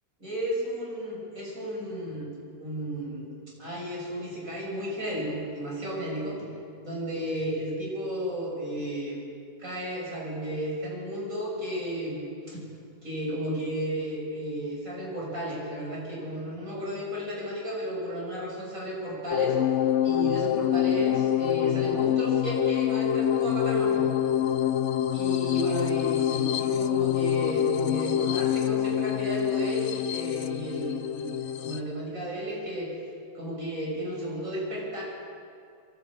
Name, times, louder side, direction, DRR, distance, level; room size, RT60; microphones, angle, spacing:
voice 1, 0.2-2.3 2.6-3.3 3.6-6.5 6.8-9.2 9.6-12.7 13.0-19.6 20.0-24.2 25.1-32.9 33.3-35.0, equal, 65° right, -4 dB, 7.4 m, -33 dB
sound 1, 19.3-31.8, left 10 dB, 60° left, 1.0 m, -26 dB
23.0 x 16.5 x 8.7 m, 2.4 s
omnidirectional pair, 1.5 m